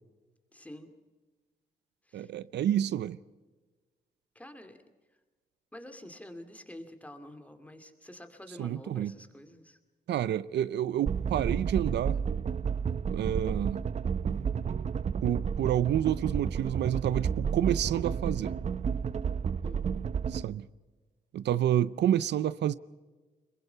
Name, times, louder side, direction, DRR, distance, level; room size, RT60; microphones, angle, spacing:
voice 1, 0.5-0.9 2.0-2.3 4.3-4.8 5.7-9.8 19.6-19.9, left 1 dB, 10° left, 2.3 m, -48 dB
voice 2, 2.1-3.2 8.6-9.1 10.1-12.2 13.1-13.9 15.2-18.5 20.3-20.7 21.3-22.7, right 11 dB, 85° right, 0.6 m, -29 dB
sound 1, 11.1-20.4, right 6 dB, 40° right, 0.6 m, -31 dB
26.0 x 22.5 x 5.7 m
wide cardioid pair, 130°, 17 cm